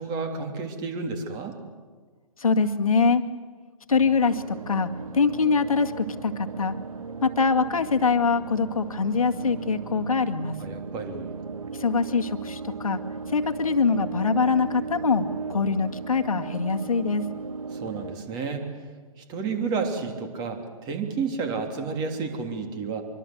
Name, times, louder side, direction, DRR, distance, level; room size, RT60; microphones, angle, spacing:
voice 1, 0.0-1.6 10.6-11.3 17.7-18.7 19.2-23.0, right 5 dB, 20° right, 5 dB, 3.2 m, -31 dB
voice 2, 2.4-3.2 3.9-6.7 7.2-10.6 11.7-13.0 13.3-17.3, left 4 dB, 70° left, 6 dB, 2.0 m, -24 dB
sound 1, 3.9-18.2, right 4 dB, 70° right, 1.4 m, -37 dB
24.5 x 24.0 x 8.0 m, 1.5 s
figure-of-eight pair, 135°, 18 cm